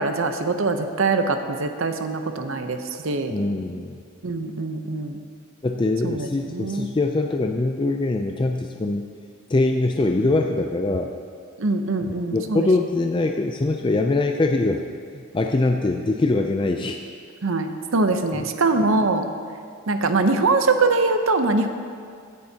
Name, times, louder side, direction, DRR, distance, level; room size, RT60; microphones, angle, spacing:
voice 1, 0.0-3.3 4.2-5.2 6.0-6.9 11.6-12.7 17.4-19.2 19.9-21.7, right 3 dB, 70° right, 7 dB, 0.7 m, -23 dB
voice 2, 3.3-4.0 5.6-9.0 9.5-11.1 12.3-14.8 15.1-17.0 18.3-18.5, left 2 dB, 25° left, 3 dB, 0.4 m, -23 dB
16.5 x 10.5 x 2.8 m, 2.2 s
head